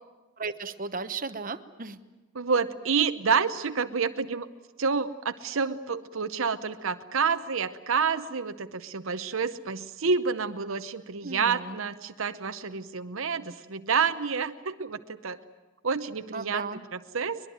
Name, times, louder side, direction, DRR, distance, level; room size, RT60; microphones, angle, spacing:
voice 1, 0.4-2.0 11.2-11.8 16.3-16.8, right 4 dB, 40° right, 9 dB, 1.0 m, -35 dB
voice 2, 2.3-4.5 4.8-15.4 15.8-16.6 17.1-17.4, right 5 dB, 70° right, 10 dB, 0.8 m, -28 dB
23.0 x 21.5 x 9.3 m, 1.1 s
head